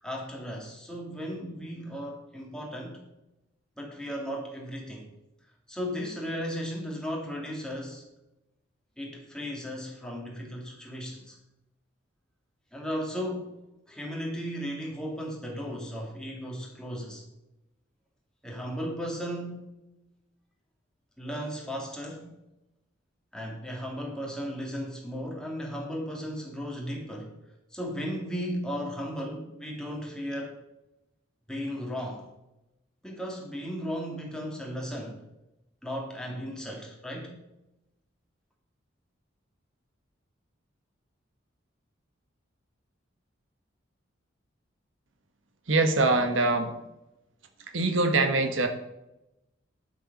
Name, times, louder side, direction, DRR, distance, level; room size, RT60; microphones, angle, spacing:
voice 1, 0.0-3.0 3.8-5.1 5.7-8.0 9.0-11.4 12.7-13.6 13.9-17.2 18.4-19.7 21.2-22.3 23.3-27.3 27.7-30.6 31.5-32.3 33.0-35.2 35.8-37.4, equal, 5° left, -1 dB, 2.4 m, -35 dB
voice 2, 45.7-46.7 47.7-48.7, right 2 dB, 80° right, 6 dB, 1.3 m, -23 dB
11.0 x 6.9 x 5.4 m, 0.90 s
head